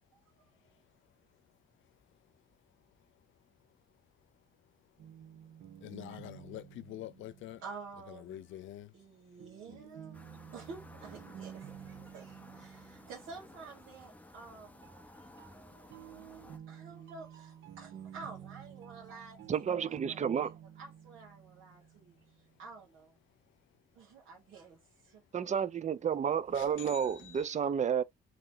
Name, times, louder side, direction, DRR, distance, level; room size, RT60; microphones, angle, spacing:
sound 1, 5.0-8.1 9.4-14.0 14.8-22.5, right 9 dB, 70° right, 1.0 m, -52 dB
voice 1, 5.8-7.6 8.1-8.9 9.7-9.9 26.5-27.5, left 13 dB, 75° left, 0.6 m, -46 dB
voice 2, 7.6-8.5 8.9-10.2 10.5-20.5 20.8-22.2 22.6-23.2 23.9-25.2, right 4 dB, 90° right, 1.4 m, -50 dB
sound 2, 10.1-16.6, left 1 dB, 5° left, 0.6 m, -55 dB
voice 3, 19.5-20.5 25.3-28.0, right 7 dB, 35° right, 0.5 m, -31 dB
3.0 x 2.8 x 3.8 m
cardioid pair, 90°, 20 cm